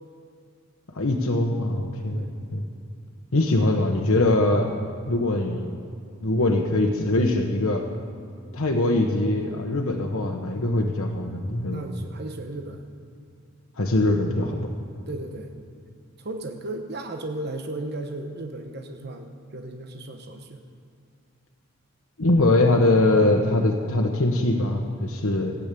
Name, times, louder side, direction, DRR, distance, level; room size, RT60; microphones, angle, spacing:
voice 1, 0.9-2.2 2.5-2.6 3.3-4.7 5.1-5.7 6.2-7.8 8.5-11.8 13.8-14.7 22.2-25.6, left 2 dB, 85° left, 2 dB, 1.1 m, -22 dB
voice 2, 11.6-12.8 15.1-15.5 16.2-20.6, right 2 dB, 50° right, 4 dB, 1.1 m, -35 dB
15.5 x 8.3 x 8.4 m, 2.5 s
head